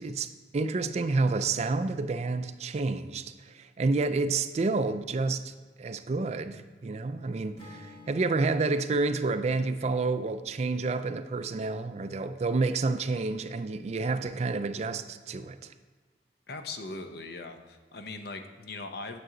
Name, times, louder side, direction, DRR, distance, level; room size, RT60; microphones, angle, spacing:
voice 1, 0.0-5.5 5.8-15.7, right 3 dB, 40° right, 0.4 m, -29 dB
Acoustic guitar / Strum, 7.6-11.8, left 3 dB, 30° left, 1.1 m, -54 dB
voice 2, 16.5-19.2, left 3 dB, 60° left, 0.7 m, -40 dB
9.2 x 7.0 x 3.8 m
head